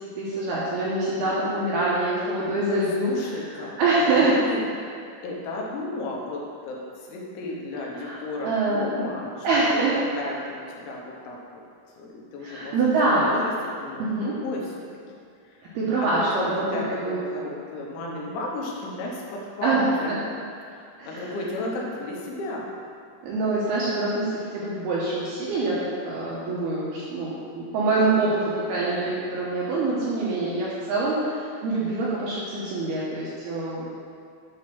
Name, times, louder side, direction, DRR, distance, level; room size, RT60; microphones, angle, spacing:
voice 1, 0.2-3.1 3.8-4.4 8.0-8.2 8.4-8.9 9.4-10.0 12.4-13.3 14.0-14.3 15.7-16.6 16.9-17.2 19.6-20.2 21.0-21.3 23.2-33.9, right 2 dB, 75° right, -7 dB, 2.4 m, -25 dB
voice 2, 2.5-3.7 4.0-9.5 9.7-9.8 10.2-11.6 12.0-13.0 13.3-14.8 15.4-15.8 16.1-20.1 20.6-20.8 21.1-22.7, left 2 dB, 75° left, -2 dB, 3.3 m, -34 dB
8.7 x 4.0 x 6.1 m, 2.3 s
omnidirectional pair, 5.7 m